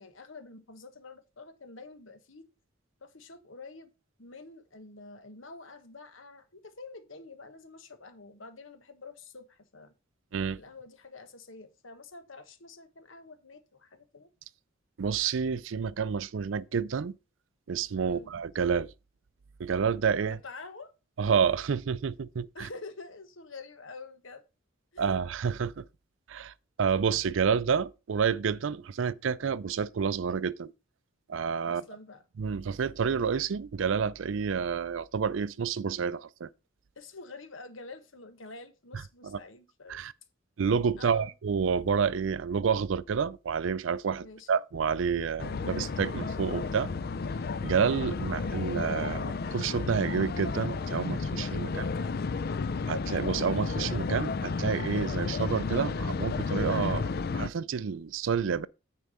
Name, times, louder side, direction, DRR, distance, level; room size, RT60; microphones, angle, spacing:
voice 1, 0.0-2.5 3.0-3.9 4.2-9.9 10.6-14.3 18.0-18.3 20.3-20.9 22.5-24.4 24.9-25.1 31.6-32.2 36.9-40.1 41.0-41.3 44.2-44.5 51.6-52.2, left 3 dB, 70° left, 1.3 m, -47 dB
voice 2, 15.0-17.1 17.7-18.9 19.6-20.4 21.2-22.7 25.0-25.8 26.3-26.5 26.8-30.7 31.3-31.8 32.4-36.5 39.2-39.4 39.9-40.1 40.6-46.9 47.6-51.8 52.9-58.7, right 6 dB, 70° right, 0.4 m, -29 dB
sound 1, 45.4-57.5, left 4 dB, 50° left, 0.4 m, -32 dB
9.5 x 4.6 x 5.4 m
head